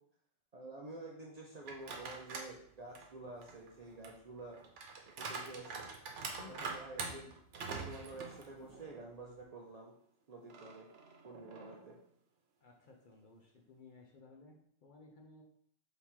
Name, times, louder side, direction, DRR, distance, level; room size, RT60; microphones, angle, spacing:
voice 1, 0.5-4.6 5.2-5.8 6.5-7.3 7.7-9.9 10.3-10.9 11.2-11.9, right 2 dB, 50° right, -2 dB, 0.5 m, -49 dB
sound 1, 1.6-2.5 3.0-9.0 9.4-9.5 10.5-12.0, right 4 dB, 85° right, 1.0 m, -45 dB
voice 2, 6.4-6.7 12.6-15.4, left 3 dB, 50° left, 1 dB, 0.7 m, -58 dB
3.5 x 2.9 x 4.4 m, 0.65 s
omnidirectional pair, 1.2 m